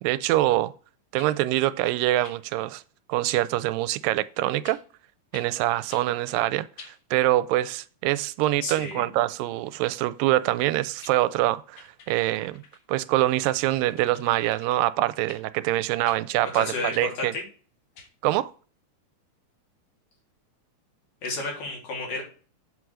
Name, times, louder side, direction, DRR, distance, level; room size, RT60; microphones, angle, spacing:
voice 1, 0.0-0.7 1.1-2.8 3.1-4.8 5.3-12.6 12.9-17.3 18.2-18.5, right 16 dB, 85° right, 2.2 m, -25 dB
sound 1, 1.2-1.3 2.2-2.4 3.3-3.4 4.6-4.8 5.3-5.5 5.9-6.1 6.8-7.0 10.6-10.7 11.0-11.2 11.8-12.8 13.7-14.8 15.3-15.4 16.0-16.2 16.9-17.1 18.0-18.1, left 5 dB, 55° left, 2.6 m, -47 dB
voice 2, 8.6-9.1 16.5-17.4 21.2-22.2, left 3 dB, 80° left, 4.8 m, -31 dB
8.2 x 4.7 x 6.3 m
omnidirectional pair, 3.9 m